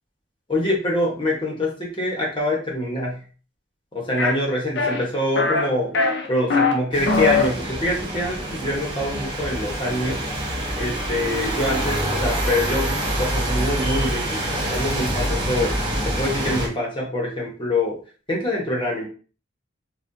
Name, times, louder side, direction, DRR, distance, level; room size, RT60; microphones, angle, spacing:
voice 1, 0.5-3.2 3.9-10.2 10.8-15.8 16.0-18.0 18.3-19.0, left 1 dB, 25° left, -3 dB, 1.1 m, -25 dB
sound 1, 4.2-4.3 4.8-5.0 5.4-5.7 5.9-6.7 7.0-7.5, left 4 dB, 60° left, 0.7 m, -20 dB
sound 2, 6.9-16.7, right 1 dB, 25° right, 1.0 m, -26 dB
4.2 x 2.4 x 2.7 m, 0.38 s
head